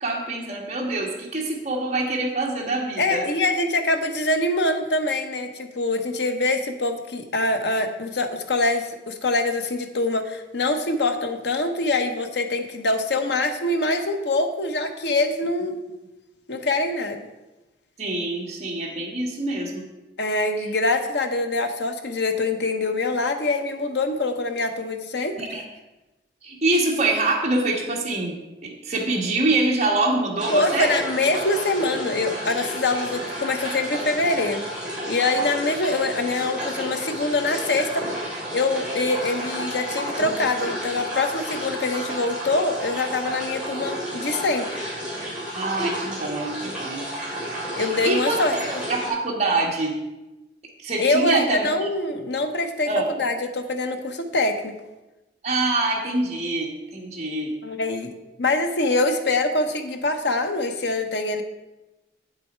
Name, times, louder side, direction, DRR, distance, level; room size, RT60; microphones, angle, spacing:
voice 1, 0.0-3.2 18.0-19.8 25.4-25.6 26.4-28.3 28.6-30.9 40.2-40.3 45.5-47.1 48.0-48.6 48.9-49.9 50.8-51.7 52.9-53.1 55.4-57.5, right 2 dB, 40° right, -2 dB, 1.8 m, -25 dB
voice 2, 3.0-15.8 16.5-17.3 20.2-25.3 30.5-34.6 35.1-38.0 38.5-44.7 47.8-48.5 51.0-54.7 57.6-58.1 58.4-61.4, left 2 dB, 75° left, 6 dB, 0.9 m, -24 dB
sound 1, 30.4-49.1, equal, 5° right, 3.3 m, -31 dB
9.2 x 7.6 x 4.4 m, 1.0 s
head